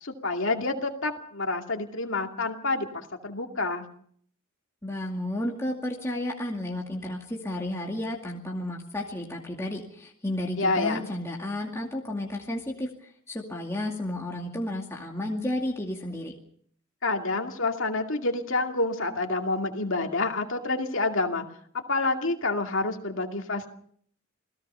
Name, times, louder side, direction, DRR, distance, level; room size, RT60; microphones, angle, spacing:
voice 1, 0.0-2.9 3.2-3.9 10.6-11.1 17.0-21.4 21.7-23.7, left 3 dB, 60° left, 3 dB, 2.5 m, -28 dB
voice 2, 4.8-16.4, left 1 dB, 15° left, -1 dB, 2.3 m, -32 dB
28.0 x 17.5 x 5.6 m, 0.62 s
head